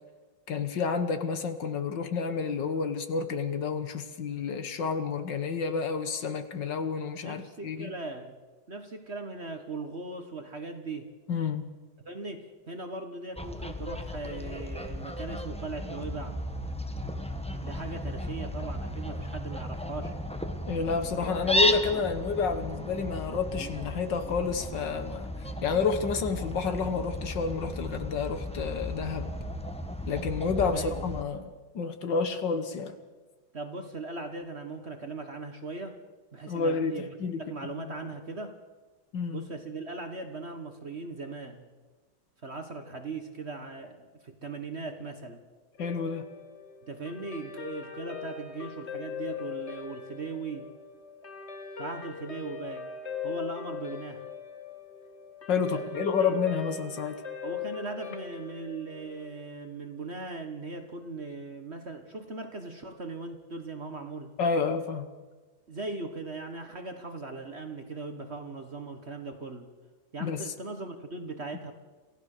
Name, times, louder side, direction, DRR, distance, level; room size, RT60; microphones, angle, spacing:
voice 1, 0.5-7.9 11.3-11.7 20.7-29.3 30.1-33.0 36.5-37.4 37.8-37.9 39.1-39.4 45.8-46.3 55.5-57.2 64.4-65.1 70.2-70.5, left 5 dB, 65° left, 9 dB, 1.9 m, -30 dB
voice 2, 7.2-8.4 8.7-11.1 12.0-16.4 17.6-20.1 30.7-31.1 33.5-36.0 36.3-38.6 39.3-41.7 42.4-45.5 46.8-50.7 51.8-52.9 53.2-54.2 55.7-56.4 57.4-64.3 65.7-69.8 70.1-71.7, right 3 dB, 35° right, 6 dB, 1.5 m, -39 dB
Fowl, 13.4-31.2, left 1 dB, 5° left, 0.9 m, -34 dB
Guitar, 45.8-60.4, left 7 dB, 35° left, 2.1 m, -41 dB
27.5 x 16.0 x 6.7 m, 1.3 s
omnidirectional pair, 2.2 m